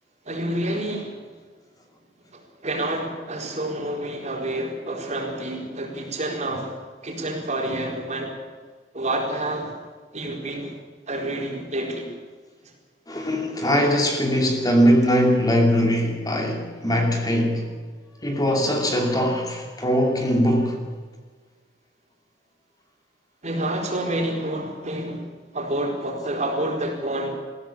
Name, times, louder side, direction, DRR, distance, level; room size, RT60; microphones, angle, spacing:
voice 1, 0.3-1.2 2.3-6.8 7.0-8.3 8.9-9.7 10.1-10.7 11.1-12.1 23.4-25.3 25.5-27.4, right 1 dB, 40° right, 4.4 m, -28 dB
voice 2, 13.1-17.7 18.2-20.8, equal, 20° left, 2.6 m, -21 dB
20.5 x 15.5 x 8.6 m
head